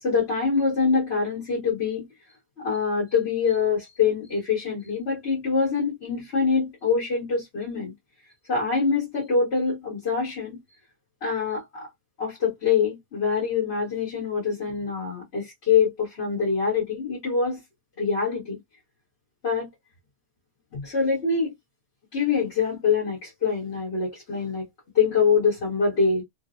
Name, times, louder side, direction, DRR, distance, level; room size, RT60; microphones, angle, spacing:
voice 1, 0.0-2.1 2.6-7.9 8.5-10.6 11.2-11.9 12.2-17.6 18.0-18.6 19.4-19.7 20.7-21.5 22.1-24.7 25.0-26.2, left 5 dB, 70° left, 1.7 m, -24 dB
3.7 x 2.0 x 2.5 m
omnidirectional pair, 1.1 m